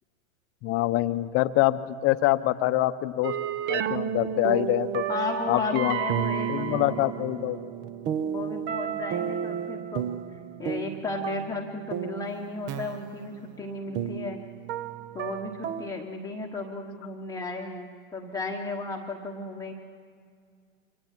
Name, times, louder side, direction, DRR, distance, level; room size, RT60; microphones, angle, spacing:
voice 1, 0.6-3.3 3.7-5.1 5.5-6.0 6.5-7.6, left 16 dB, 35° left, 12 dB, 0.9 m, -25 dB
sound 1, 3.2-15.9, right 8 dB, 25° right, 0.7 m, -32 dB
voice 2, 5.1-7.1 8.2-10.1 10.3-14.4 15.1-19.7, left 3 dB, 10° left, 0 dB, 1.1 m, -34 dB
24.0 x 19.0 x 7.4 m, 2.2 s
hypercardioid pair, 125°, 42 cm